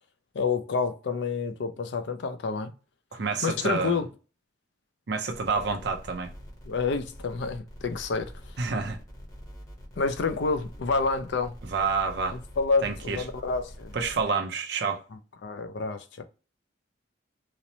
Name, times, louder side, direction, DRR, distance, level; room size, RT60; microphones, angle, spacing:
voice 1, 0.3-2.7 3.4-4.1 6.7-8.3 10.0-11.5 12.3-14.0 15.4-16.2, left 4 dB, 60° left, 0.4 m, -28 dB
voice 2, 3.1-4.0 5.1-6.3 8.6-9.0 11.7-12.4 12.8-13.2 13.9-15.0, right 4 dB, 60° right, 0.5 m, -28 dB
sound 1, 5.3-14.2, equal, 15° left, 0.8 m, -45 dB
2.9 x 2.0 x 2.7 m
head